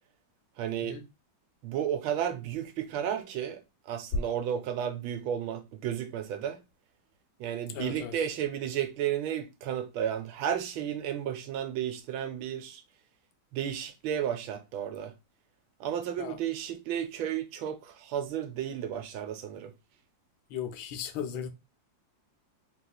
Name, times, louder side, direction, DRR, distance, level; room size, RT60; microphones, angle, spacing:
voice 1, 0.6-1.0 1.6-3.6 3.9-6.6 7.4-12.8 13.5-15.1 15.8-19.7, right 9 dB, 85° right, 1.4 m, -33 dB
voice 2, 7.7-8.3 16.2-16.4 20.5-21.5, left 8 dB, 80° left, 1.3 m, -37 dB
3.4 x 3.0 x 2.3 m
omnidirectional pair, 2.1 m